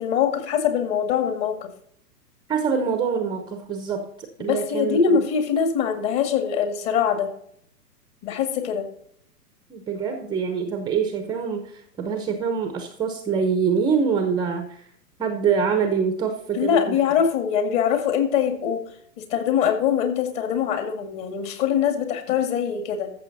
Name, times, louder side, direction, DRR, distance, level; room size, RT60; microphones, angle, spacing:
voice 1, 0.0-1.7 4.4-7.3 8.2-8.9 16.5-18.9 19.2-23.1, left 7 dB, 35° left, 7 dB, 2.1 m, -23 dB
voice 2, 2.5-5.2 9.7-14.8 15.2-17.0, right 6 dB, 10° right, 6 dB, 0.7 m, -25 dB
14.0 x 6.8 x 4.0 m, 0.67 s
hypercardioid pair, 125°, 49 cm